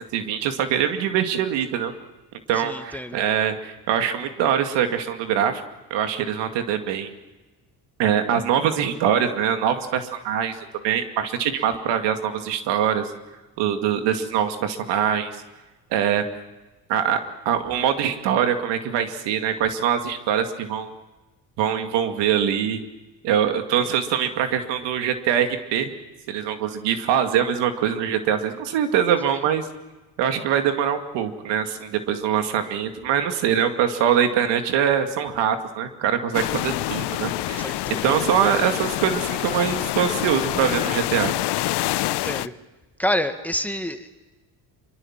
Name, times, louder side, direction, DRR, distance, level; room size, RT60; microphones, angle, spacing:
voice 1, 0.1-1.9 2.5-5.6 5.9-7.1 8.0-10.6 10.8-13.1 13.6-15.3 15.9-16.2 16.9-20.9 21.6-22.8 23.2-25.9 26.3-29.7 30.2-37.7 38.0-41.3, right 9 dB, 90° right, 7 dB, 2.4 m, -23 dB
voice 2, 2.5-3.2 29.2-29.5 37.5-38.2 42.1-42.5 43.0-44.1, left 1 dB, 5° left, 7 dB, 1.7 m, -28 dB
sound 1, 36.3-42.5, left 17 dB, 70° left, 0.8 m, -26 dB
25.0 x 23.5 x 7.4 m, 1.1 s
cardioid pair, 110°, 41 cm